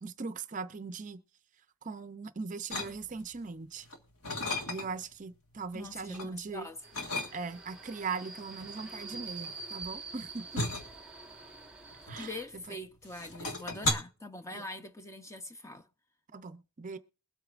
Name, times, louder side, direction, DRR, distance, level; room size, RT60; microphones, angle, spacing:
voice 1, 0.0-1.2 1.8-3.9 4.7-6.7 7.3-10.6 12.1-12.8 14.5-14.6 16.3-17.0, right 4 dB, 35° right, 0.5 m, -40 dB
sound 1, 2.7-3.4 3.8-5.1 5.5-6.3 6.9-7.8 8.6-12.7 13.0-13.9, left 2 dB, 80° left, 1.6 m, -36 dB
voice 2, 5.7-6.9 12.2-15.9, left 1 dB, 15° left, 0.5 m, -43 dB
Subway metro underground, 6.8-12.5, right 3 dB, 5° right, 1.3 m, -46 dB
22.0 x 8.2 x 2.4 m
head